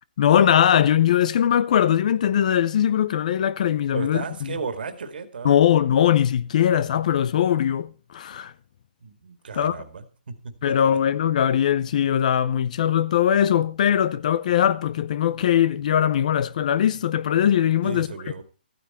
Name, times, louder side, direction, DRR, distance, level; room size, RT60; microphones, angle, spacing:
voice 1, 0.2-4.6 5.4-8.5 9.5-9.8 10.6-18.1, left 10 dB, 45° left, 0.7 m, -20 dB
voice 2, 3.9-5.6 9.0-10.8 17.8-18.4, right 5 dB, 70° right, 2.1 m, -34 dB
14.5 x 9.7 x 4.2 m
hypercardioid pair, 160°, 5 cm